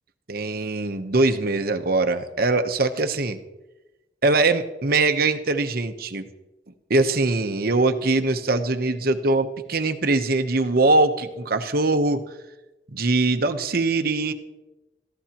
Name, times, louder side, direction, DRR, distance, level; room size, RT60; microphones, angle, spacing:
voice 1, 0.3-3.4 4.2-6.2 6.9-12.2 12.9-14.3, right 2 dB, 55° right, 8 dB, 0.9 m, -22 dB
23.0 x 15.0 x 3.0 m, 1.0 s
head